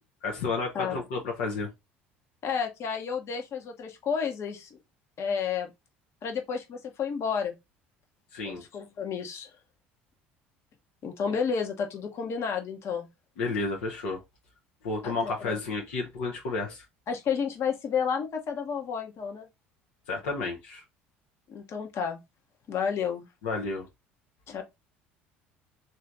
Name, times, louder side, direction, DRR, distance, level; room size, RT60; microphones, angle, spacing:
voice 1, 0.2-1.7 8.3-8.6 13.4-14.2 14.8-16.8 20.1-20.8 23.4-23.9, left 3 dB, 75° left, 0.8 m, -31 dB
voice 2, 2.4-4.8 5.2-5.7 6.2-7.6 8.4-9.5 11.0-13.1 15.0-15.6 17.1-19.5 21.5-22.2 22.7-23.3 24.5-24.6, left 6 dB, 50° left, 1.1 m, -31 dB
3.3 x 2.8 x 3.8 m
hypercardioid pair, 65°, 6 cm